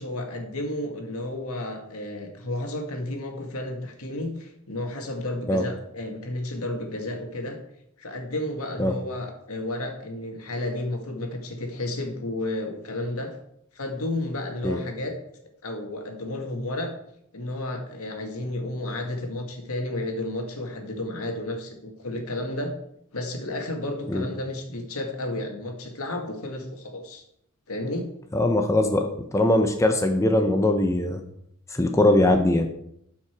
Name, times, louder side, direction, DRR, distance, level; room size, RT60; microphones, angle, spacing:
voice 1, 0.0-7.6 8.0-13.3 13.7-15.1 15.6-16.9 17.3-22.7 23.1-27.2 27.7-28.1, left 1 dB, 75° left, 3 dB, 2.0 m, -32 dB
voice 2, 28.3-29.1 29.3-31.2 31.7-32.7, left 1 dB, 15° left, 4 dB, 0.7 m, -21 dB
13.0 x 5.8 x 4.7 m, 0.74 s
head